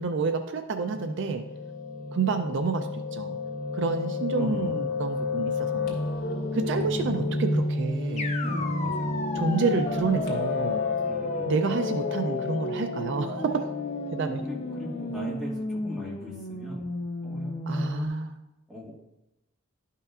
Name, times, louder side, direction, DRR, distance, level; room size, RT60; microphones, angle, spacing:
voice 1, 0.0-1.4 2.1-3.4 3.7-5.9 6.5-8.3 9.3-10.8 11.5-13.7 14.1-14.4 17.7-18.4, right 4 dB, 55° right, 7 dB, 0.4 m, -29 dB
Piano, 0.9-15.3, left 3 dB, 75° left, 1.9 m, -31 dB
voice 2, 4.4-4.8 6.8-7.1 8.4-9.3 11.0-11.5 14.4-16.9 17.2-18.2 18.7-19.0, left 1 dB, ahead, -5 dB, 1.6 m, -39 dB
sound 1, 8.2-18.1, left 2 dB, 30° left, 0.6 m, -34 dB
11.5 x 5.5 x 2.4 m, 0.94 s
head